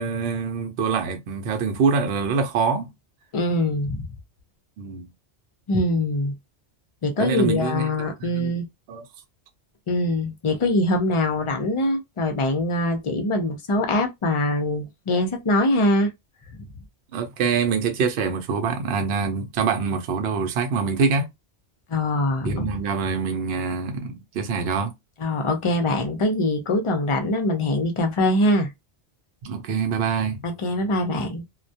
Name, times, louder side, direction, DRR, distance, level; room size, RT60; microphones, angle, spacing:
voice 1, 0.0-2.9 4.8-5.0 7.2-7.9 8.2-8.5 8.9-9.0 17.1-21.3 22.4-24.9 29.4-30.4, right 5 dB, 65° right, 0.8 m, -25 dB
voice 2, 3.3-4.0 5.7-6.3 7.0-8.6 9.9-16.1 21.9-22.7 25.2-28.7 30.4-31.4, left 1 dB, 45° left, 0.4 m, -23 dB
2.2 x 2.1 x 2.6 m
omnidirectional pair, 1.2 m